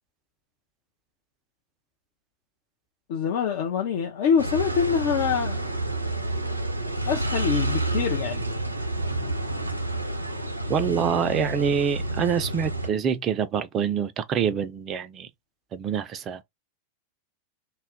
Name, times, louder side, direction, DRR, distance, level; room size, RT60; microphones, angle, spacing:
voice 1, 3.1-5.6 7.0-8.4, left 7 dB, 50° left, 0.5 m, -25 dB
sound 1, 4.4-12.9, right 2 dB, 85° right, 0.5 m, -29 dB
voice 2, 10.7-15.3 15.7-16.4, right 7 dB, 30° right, 0.4 m, -26 dB
2.2 x 2.0 x 3.5 m
figure-of-eight pair, 90°, 0 cm